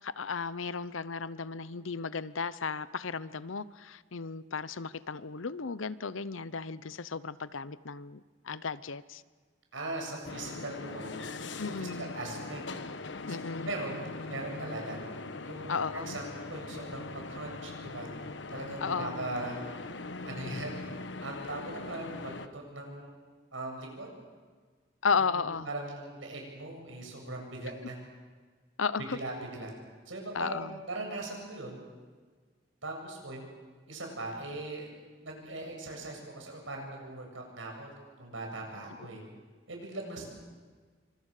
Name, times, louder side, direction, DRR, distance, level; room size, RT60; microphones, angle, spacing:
voice 1, 0.0-9.2 11.6-12.1 13.3-13.7 15.7-16.2 18.8-19.2 25.0-25.7 28.8-29.2 30.3-30.7, left 5 dB, 90° left, 16 dB, 0.8 m, -34 dB
voice 2, 9.7-11.1 11.7-12.6 13.3-13.4 13.6-15.0 15.4-18.1 18.5-19.6 20.3-20.8 21.2-23.1 23.5-24.1 25.2-28.0 29.1-29.7 30.1-31.8 32.8-33.4 33.9-34.9 35.2-37.9 38.2-39.2 39.7-40.3, right 2 dB, 85° right, 1 dB, 7.9 m, -40 dB
sound 1, 10.3-22.5, left 3 dB, 65° left, 1.2 m, -41 dB
28.5 x 25.5 x 6.7 m, 1.5 s
head